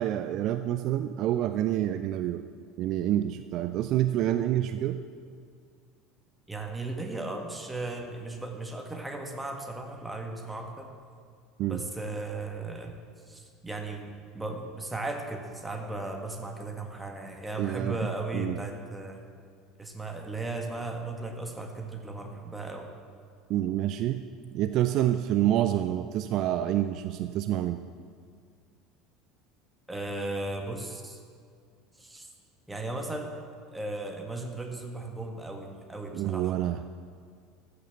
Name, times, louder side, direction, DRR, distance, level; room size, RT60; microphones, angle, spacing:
voice 1, 0.0-2.4 2.8-5.0 11.6-11.8 17.6-18.0 18.3-18.6 23.5-24.2 24.5-27.8 36.1-36.9, right 12 dB, 45° right, 10 dB, 0.4 m, -27 dB
voice 2, 6.5-10.9 11.7-13.0 13.3-14.1 14.3-19.2 19.8-22.9 29.9-31.2 32.0-32.3 32.7-33.3 33.7-36.5, right 2 dB, 10° right, 3 dB, 1.7 m, -36 dB
14.0 x 6.7 x 7.0 m, 2.2 s
figure-of-eight pair, 70°, 0 cm